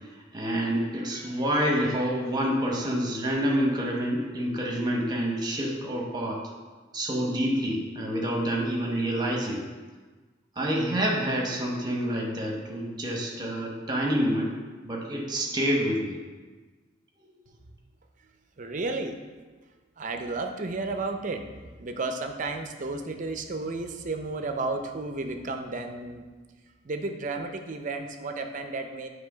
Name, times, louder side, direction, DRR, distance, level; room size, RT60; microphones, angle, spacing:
voice 1, 0.3-6.4 6.9-9.6 10.6-14.5 14.8-16.2, equal, 20° right, -1 dB, 1.0 m, -27 dB
voice 2, 18.6-19.2 20.0-21.5 21.8-26.3 26.8-29.1, right 3 dB, 40° right, 5 dB, 0.5 m, -32 dB
7.6 x 3.3 x 4.9 m, 1.4 s
head